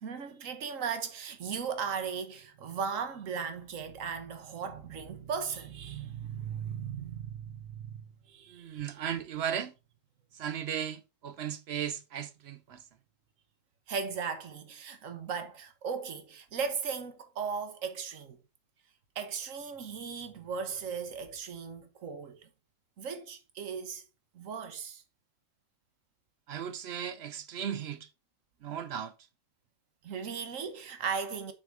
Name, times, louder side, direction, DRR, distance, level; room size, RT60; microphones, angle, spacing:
voice 1, 0.0-8.8 13.9-18.4 19.1-22.4 23.0-24.0 24.3-25.0 30.0-31.5, right 6 dB, 85° right, 1.4 m, -37 dB
voice 2, 8.5-9.7 10.3-12.8 26.5-28.1 28.6-29.1, right 9 dB, 65° right, 0.7 m, -36 dB
6.2 x 3.8 x 4.6 m
omnidirectional pair, 1.3 m